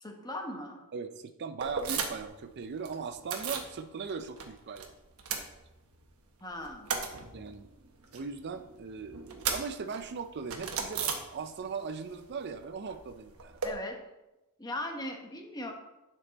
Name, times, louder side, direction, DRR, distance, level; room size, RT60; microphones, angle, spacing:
voice 1, 0.0-0.8 6.4-6.9 13.6-14.0 14.6-15.7, left 1 dB, 20° left, 3 dB, 1.1 m, -38 dB
voice 2, 0.9-4.9 7.3-7.7 8.1-13.6, right 5 dB, 50° right, 9 dB, 0.5 m, -39 dB
sound 1, 1.6-2.4 2.6-3.7 4.1-4.9 5.1-6.1 6.4-11.8 12.1-13.7, right 5 dB, 75° right, 1.2 m, -37 dB
9.5 x 5.4 x 4.1 m, 0.98 s
head